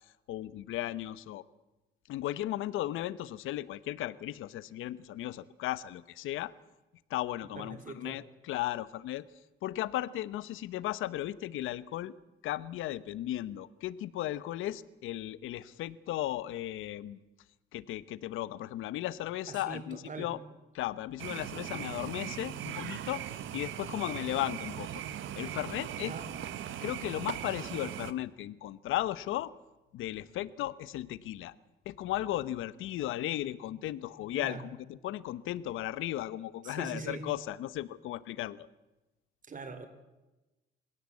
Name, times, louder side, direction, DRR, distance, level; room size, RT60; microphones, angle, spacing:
voice 1, 0.3-1.4 2.1-6.5 7.1-9.2 9.6-12.1 12.4-17.2 17.7-20.4 20.7-23.2 23.5-25.0 25.4-26.1 26.8-29.5 29.9-31.5 31.8-38.7, left 14 dB, 90° left, 17 dB, 1.1 m, -36 dB
voice 2, 7.5-8.2 19.5-20.3 26.0-26.3 34.4-34.6 36.6-37.3 39.4-39.9, right 4 dB, 40° right, 9 dB, 4.3 m, -42 dB
sound 1, 21.2-28.1, right 10 dB, 80° right, 1.5 m, -39 dB
26.5 x 17.0 x 8.5 m, 1.1 s
cardioid pair, 90°, 20 cm